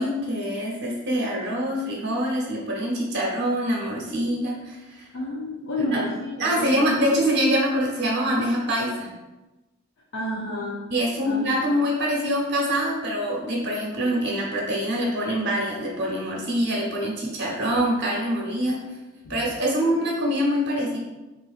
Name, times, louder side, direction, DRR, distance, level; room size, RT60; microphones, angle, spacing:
voice 1, 0.0-5.0 5.9-6.0 6.4-9.1 10.9-18.8 19.3-21.0, equal, 55° right, -3 dB, 0.9 m, -25 dB
voice 2, 5.1-7.2 10.1-10.8 11.3-11.5 19.2-19.6, left 1 dB, 65° left, -4 dB, 0.5 m, -30 dB
3.8 x 2.5 x 2.4 m, 1.1 s
head